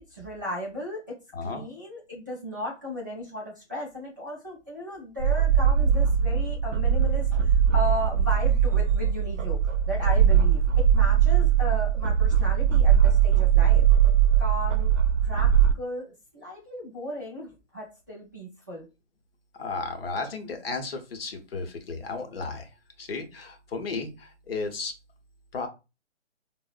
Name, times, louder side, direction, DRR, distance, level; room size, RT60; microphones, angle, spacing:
voice 1, 0.1-13.9 14.4-15.0 15.2-18.9, left 1 dB, 20° right, 0.4 m, -35 dB
voice 2, 1.3-1.7 19.5-22.7 23.0-24.9 25.5-25.7, left 3 dB, 55° left, 0.7 m, -34 dB
sound 1, 5.2-15.7, right 8 dB, 80° right, 0.6 m, -21 dB
3.6 x 2.0 x 2.4 m
hypercardioid pair, 160°, 36 cm